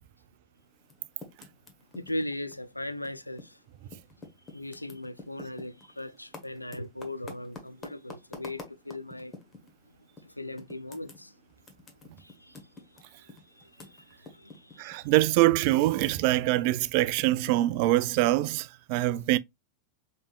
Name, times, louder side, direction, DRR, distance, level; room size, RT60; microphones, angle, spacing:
Typing, 0.8-3.6 3.9-9.7 10.2-10.3 10.6-15.7 16.0-18.5, left 3 dB, 20° left, 1.1 m, -48 dB
voice 1, 1.9-3.6 4.5-9.3 10.2-11.3 12.2-12.6 13.5-15.0, left 1 dB, 85° left, 0.4 m, -39 dB
voice 2, 14.8-19.4, right 16 dB, 45° right, 0.3 m, -24 dB
5.1 x 3.2 x 2.3 m
figure-of-eight pair, 90°, 0 cm